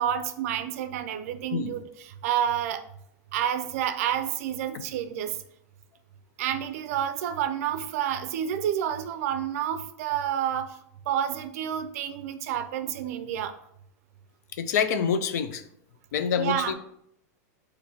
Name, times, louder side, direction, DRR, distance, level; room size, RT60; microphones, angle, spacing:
voice 1, 0.0-2.8 3.3-5.4 6.4-10.8 11.1-13.5 16.4-16.7, right 10 dB, 55° right, 10 dB, 0.4 m, -29 dB
voice 2, 14.6-15.6 16.1-16.7, left 7 dB, 70° left, 11 dB, 0.5 m, -26 dB
4.3 x 2.6 x 4.3 m, 0.73 s
supercardioid pair, 165°, 9 cm